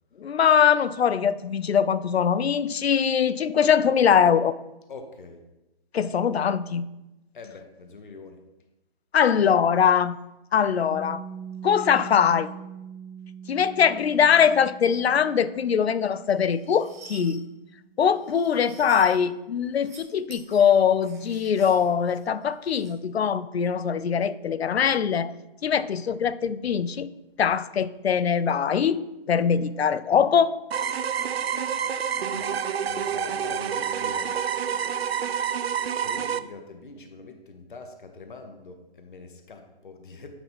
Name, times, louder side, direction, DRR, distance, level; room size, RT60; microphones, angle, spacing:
voice 1, 0.2-4.5 5.9-6.9 9.1-10.2 10.5-11.2 11.6-12.5 13.5-17.4 18.0-25.3 25.6-27.1 27.4-30.5, left 7 dB, 90° left, 16 dB, 0.5 m, -22 dB
voice 2, 4.9-5.4 7.3-8.4 32.3-34.3 36.0-40.4, left 3 dB, 55° left, 6 dB, 0.9 m, -44 dB
Piano, 10.9-18.2, right 7 dB, 65° right, 1.3 m, -43 dB
sound 1, 16.3-17.4 18.1-19.2 19.7-20.0 20.3-22.9, right 4 dB, 15° right, 0.8 m, -49 dB
sound 2, 30.7-36.4, right 8 dB, 80° right, 0.5 m, -28 dB
8.9 x 4.0 x 3.5 m, 0.96 s
hypercardioid pair, 170°, 30 cm